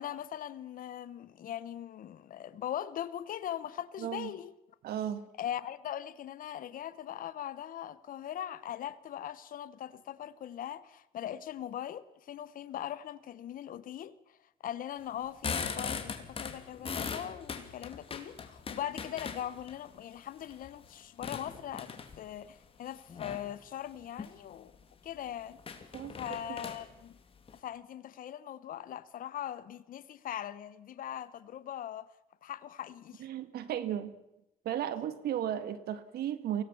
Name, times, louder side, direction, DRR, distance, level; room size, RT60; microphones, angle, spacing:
voice 1, 0.0-4.5 5.4-14.1 14.6-24.7 25.0-25.6 26.2-27.2 27.5-32.1 32.4-33.2, left 10 dB, 55° left, 1.0 m, -40 dB
voice 2, 4.0-4.3 4.8-5.3 25.9-26.1 26.4-26.6 33.2-34.1 34.7-36.6, right 10 dB, 70° right, 1.8 m, -35 dB
sound 1, 15.1-19.7 20.3-22.3 23.1-23.5 24.0-24.4 24.7-24.8 25.1-25.2 25.6-27.6, left 5 dB, 35° left, 2.6 m, -39 dB
23.5 x 17.5 x 7.1 m
cardioid pair, 110°, 17 cm